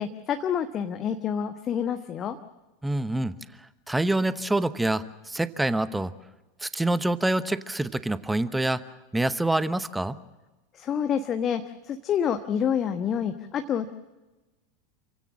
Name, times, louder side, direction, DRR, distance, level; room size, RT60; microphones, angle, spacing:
voice 1, 0.0-2.4 10.7-11.6 11.9-13.9, left 8 dB, 30° left, 7 dB, 1.2 m, -28 dB
voice 2, 2.8-3.3 3.9-6.1 6.6-8.8 9.1-10.2, right 2 dB, 5° right, 15 dB, 1.0 m, -26 dB
28.5 x 16.5 x 7.5 m, 1.1 s
figure-of-eight pair, 85°, 0 cm